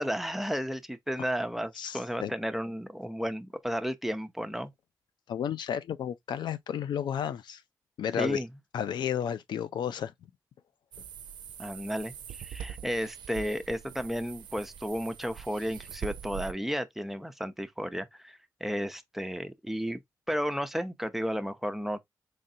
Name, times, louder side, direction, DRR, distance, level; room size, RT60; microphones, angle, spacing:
voice 1, 0.0-4.7 8.2-8.5 11.6-20.0 20.3-22.0, equal, 5° right, 0.6 m, -33 dB
voice 2, 1.8-2.3 5.3-7.6 8.0-8.4 8.7-10.1, left 9 dB, 90° left, 0.4 m, -32 dB
sound 1, 10.9-16.5, right 8 dB, 85° right, 0.4 m, -43 dB
3.9 x 3.2 x 2.7 m
cardioid pair, 60°, 8 cm